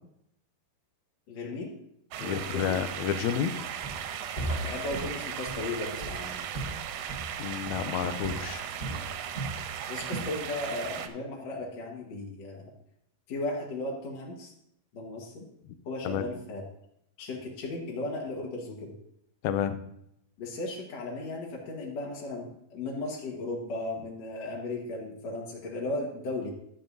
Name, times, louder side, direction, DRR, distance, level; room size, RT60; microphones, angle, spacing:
voice 1, 1.3-1.7 2.2-2.8 4.6-6.4 9.9-12.7 13.3-14.5 14.9-15.5 15.9-16.6 17.2-18.9 20.4-26.5, left 2 dB, 55° left, -3 dB, 2.5 m, -36 dB
sound 1, 2.1-11.1, right 9 dB, 80° right, 2.3 m, -37 dB
voice 2, 2.2-3.5 7.4-8.6 16.0-16.3 19.4-19.8, left 9 dB, 80° left, 10 dB, 1.8 m, -30 dB
Walk footsteps, 3.8-4.1 4.4-7.4 7.6-8.0 8.2-9.6 10.0-10.3, right 1 dB, 30° left, 2.6 m, -37 dB
13.0 x 9.0 x 2.7 m, 0.76 s
omnidirectional pair, 4.1 m